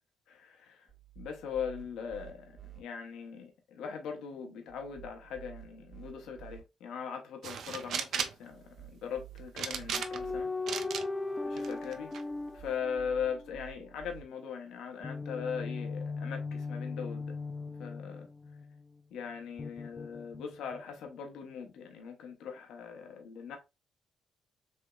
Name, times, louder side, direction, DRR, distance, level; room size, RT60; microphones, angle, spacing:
voice 1, 0.3-0.8 1.2-10.5 11.4-12.1 12.5-17.3 17.8-18.3 19.1-23.6, left 7 dB, 85° left, 0.8 m, -40 dB
sound 1, 0.9-2.8 4.7-6.6 8.5-10.4 12.3-14.2, right 13 dB, 45° right, 1.0 m, -52 dB
sound 2, 7.4-8.4 9.6-10.3 10.7-11.0 11.6-12.2, right 7 dB, 70° right, 0.4 m, -35 dB
sound 3, 9.9-13.6 15.0-18.8 19.6-20.8, left 3 dB, 20° left, 0.3 m, -38 dB
3.3 x 2.9 x 2.3 m
cardioid pair, 90°, 0 cm